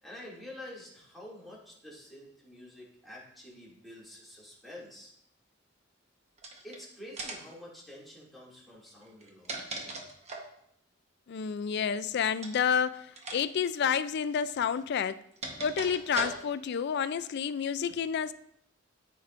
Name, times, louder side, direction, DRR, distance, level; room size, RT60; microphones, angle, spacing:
voice 1, 0.0-5.1 6.6-9.7, left 1 dB, ahead, -6 dB, 2.4 m, -48 dB
sound 1, 6.4-6.8 7.2-7.6 9.1-10.6 12.4-12.7 13.2-13.4 13.7-13.8 14.8-16.7, right 3 dB, 35° right, 1.0 m, -39 dB
voice 2, 11.3-13.0 13.3-15.2 15.6-18.3, left 7 dB, 55° left, 14 dB, 0.4 m, -29 dB
14.0 x 4.6 x 2.5 m, 0.72 s
head